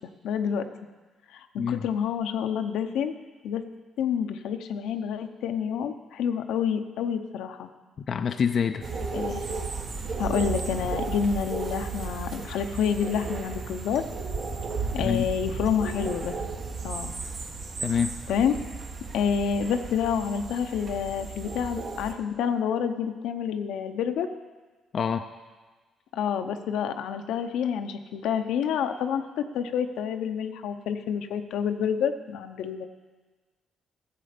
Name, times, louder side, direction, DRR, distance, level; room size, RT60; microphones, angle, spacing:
voice 1, 0.2-0.7 1.3-3.1 3.4-3.6 4.0-7.7 9.1-9.4 10.2-14.0 14.9-16.3 16.8-17.1 18.3-18.5 19.1-24.3 26.1-29.3 29.5-32.9, left 7 dB, 85° left, 7 dB, 0.7 m, -28 dB
voice 2, 1.6-1.9 8.0-8.8 15.0-15.3 17.8-18.1 24.9-25.3, left 7 dB, 50° left, 8 dB, 0.4 m, -26 dB
sound 1, 8.8-22.1, right 4 dB, 60° right, 1.5 m, -34 dB
14.0 x 7.6 x 5.1 m, 1.3 s
cardioid pair, 90°, 0 cm